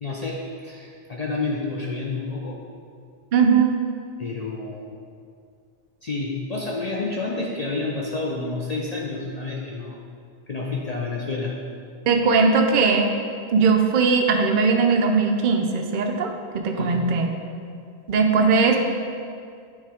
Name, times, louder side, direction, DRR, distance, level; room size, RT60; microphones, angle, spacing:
voice 1, 0.0-2.6 4.2-4.9 6.0-10.0 10.5-11.5 16.8-17.0, left 3 dB, 45° left, -3 dB, 0.6 m, -29 dB
voice 2, 3.3-3.8 12.1-13.1 13.5-17.3 18.1-18.8, right 4 dB, 55° right, 3 dB, 0.7 m, -19 dB
8.9 x 3.4 x 4.9 m, 2.3 s
omnidirectional pair, 1.1 m